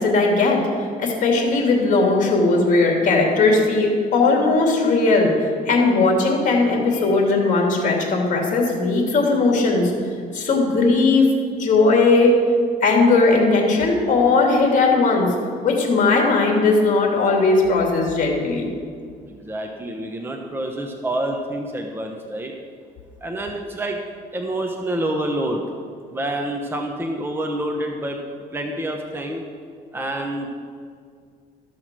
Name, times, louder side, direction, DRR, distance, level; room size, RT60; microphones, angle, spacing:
voice 1, 0.0-5.3 5.7-9.9 10.3-12.3 12.8-15.3 15.6-18.7, left 3 dB, 50° left, 0 dB, 2.8 m, -18 dB
voice 2, 19.3-22.5 23.2-24.0 24.3-25.6 26.1-28.2 28.5-29.4 29.9-30.5, right 1 dB, 15° right, 2 dB, 1.0 m, -27 dB
13.5 x 6.4 x 6.1 m, 2.1 s
cardioid pair, 110°, 17 cm